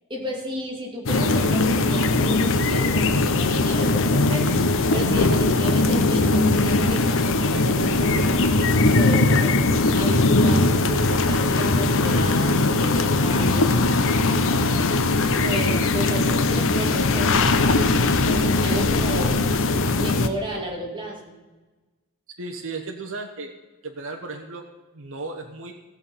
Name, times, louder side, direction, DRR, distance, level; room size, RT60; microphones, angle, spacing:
voice 1, 0.1-4.5 4.9-9.6 10.0-13.7 15.4-17.4 17.7-17.9 18.3-19.4 19.9-21.3, right 1 dB, 20° right, -1 dB, 2.8 m, -32 dB
sound 1, 1.1-20.3, left 2 dB, 60° left, 0.8 m, -20 dB
voice 2, 22.4-23.5 23.8-24.6 24.9-25.7, right 3 dB, 65° right, 3 dB, 1.0 m, -34 dB
16.5 x 6.9 x 5.6 m, 1.2 s
head